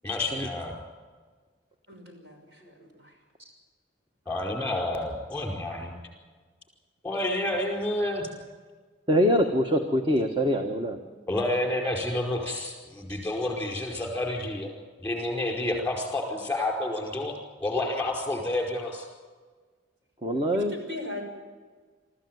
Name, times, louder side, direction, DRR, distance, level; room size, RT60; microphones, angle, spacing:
voice 1, 0.0-0.7 4.3-5.9 7.0-8.3 10.6-10.7 11.1-14.7 15.0-17.3 17.6-19.1, left 1 dB, 10° left, 2 dB, 4.8 m, -29 dB
voice 2, 1.9-2.4 20.7-21.2, left 2 dB, 60° right, 2 dB, 5.8 m, -37 dB
voice 3, 9.1-11.0 20.2-20.7, equal, 25° right, 4 dB, 1.3 m, -24 dB
24.0 x 14.5 x 9.4 m, 1.5 s
head